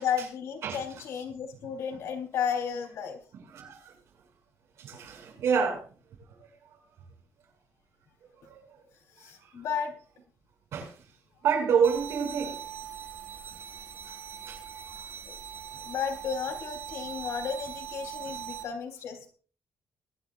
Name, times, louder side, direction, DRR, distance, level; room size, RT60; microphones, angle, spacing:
voice 1, 0.0-3.2 9.2-9.9 15.3-15.4 15.8-19.3, left 7 dB, 75° left, 3.6 m, -33 dB
voice 2, 0.6-1.0 3.3-3.9 4.8-5.8 8.4-8.6 10.7-10.9 11.4-12.6 14.5-14.6 18.2-18.3, right 6 dB, 70° right, 6.7 m, -28 dB
sound 1, 11.8-18.6, right 9 dB, 50° right, 2.0 m, -41 dB
22.5 x 11.0 x 2.5 m
cardioid pair, 150°, 5 cm